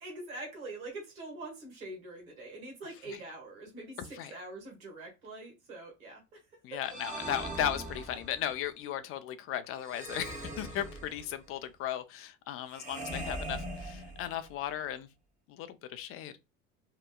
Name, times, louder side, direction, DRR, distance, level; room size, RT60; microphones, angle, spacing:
voice 1, 0.0-6.4 6.7-6.8 12.9-13.0, right 2 dB, 80° right, 1.3 m, -44 dB
voice 2, 4.0-4.3 6.6-15.1 15.5-16.4, left 11 dB, 35° left, 0.4 m, -36 dB
sound 1, 6.8-8.5 9.8-11.5 12.7-14.6, right 1 dB, 20° right, 0.9 m, -40 dB
2.9 x 2.1 x 2.3 m
hypercardioid pair, 75°, 41 cm